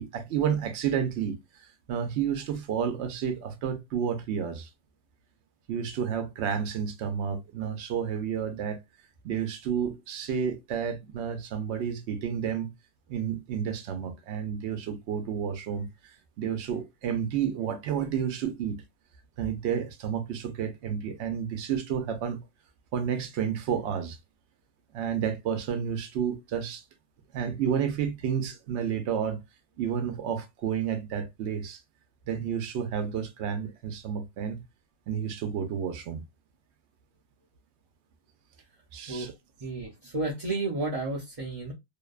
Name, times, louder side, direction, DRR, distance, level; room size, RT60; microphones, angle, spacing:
voice 1, 0.0-4.7 5.7-8.8 9.2-12.7 13.1-18.8 19.4-22.4 22.9-24.2 24.9-26.8 27.3-29.4 29.8-31.8 32.3-34.6 35.1-36.2 38.9-39.3, right 8 dB, 80° right, 0.9 m, -31 dB
voice 2, 39.6-41.7, right 2 dB, 40° right, 0.6 m, -32 dB
2.7 x 2.2 x 2.3 m
omnidirectional pair, 1.1 m